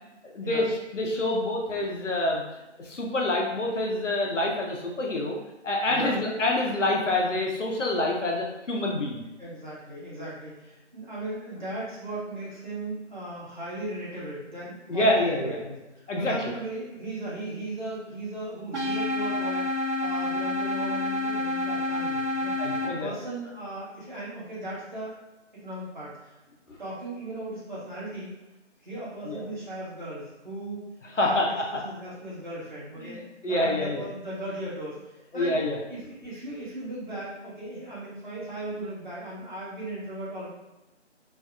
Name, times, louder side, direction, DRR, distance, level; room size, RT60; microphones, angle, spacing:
voice 1, 0.3-2.4 2.8-5.4 5.6-9.2 14.9-15.6 16.1-16.4 22.6-23.1 26.7-26.8 29.3-29.4 31.2-31.5 33.0-34.0 35.3-35.8, left 1 dB, 85° left, -1 dB, 0.8 m, -27 dB
voice 2, 5.9-6.2 9.4-15.7 16.2-22.7 23.0-25.1 25.6-26.1 26.8-28.3 28.8-31.4 31.8-35.0 35.3-35.6 35.9-40.5, right 1 dB, 40° right, -8 dB, 1.0 m, -37 dB
sound 1, 18.7-22.9, left 2 dB, 75° right, 0.9 m, -28 dB
2.6 x 2.3 x 2.3 m, 1.0 s
figure-of-eight pair, 175°, 36 cm